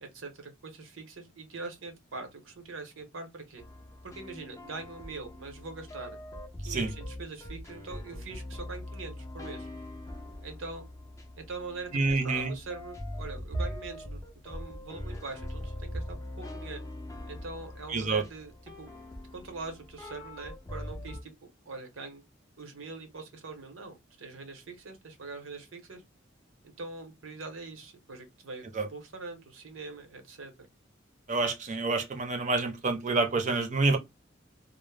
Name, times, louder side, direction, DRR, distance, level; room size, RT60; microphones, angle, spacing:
voice 1, 0.0-3.6 4.0-6.2 6.6-9.7 10.4-10.8 11.4-16.8 17.3-18.5 18.8-18.9 19.3-22.2 22.6-26.0 26.6-30.7, right 3 dB, 85° right, 0.9 m, -43 dB
sound 1, 3.6-21.2, left 1 dB, 15° left, 0.4 m, -42 dB
voice 2, 11.9-12.5 17.9-18.2 28.7-28.9 31.3-34.0, right 3 dB, 40° right, 0.5 m, -27 dB
2.1 x 2.0 x 3.2 m
head